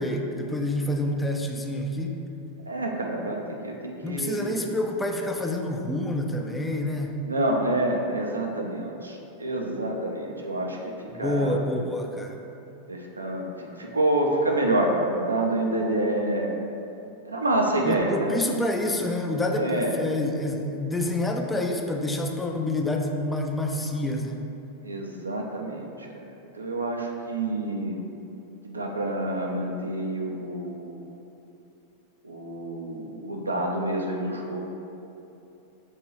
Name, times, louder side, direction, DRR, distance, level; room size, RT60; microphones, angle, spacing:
voice 1, 0.0-2.2 4.0-7.2 11.1-12.4 17.9-24.4, left 1 dB, 10° left, 2 dB, 0.3 m, -28 dB
voice 2, 2.7-4.5 7.3-11.6 12.9-16.5 17.3-18.5 19.5-20.0 24.8-28.0 28.6-31.0 32.2-34.6, right 1 dB, 80° right, 1 dB, 0.5 m, -28 dB
6.3 x 2.6 x 3.0 m, 2.9 s
figure-of-eight pair, 90°, 0 cm